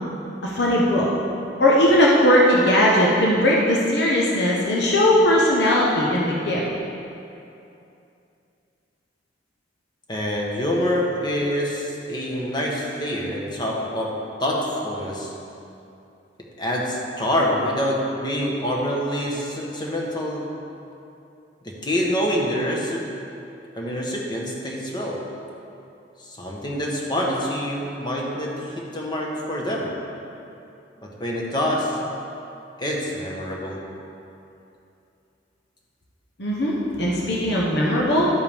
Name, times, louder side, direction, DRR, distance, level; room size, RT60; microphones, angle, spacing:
voice 1, 0.4-1.1 1.6-6.6 36.4-38.3, left 1 dB, 65° left, -4 dB, 1.1 m, -19 dB
voice 2, 10.1-15.3 16.6-20.5 21.6-23.0 23.7-25.2 26.2-29.9 31.0-32.0 32.8-33.9, equal, 25° left, -2 dB, 1.2 m, -26 dB
11.0 x 7.9 x 3.6 m, 2.7 s
head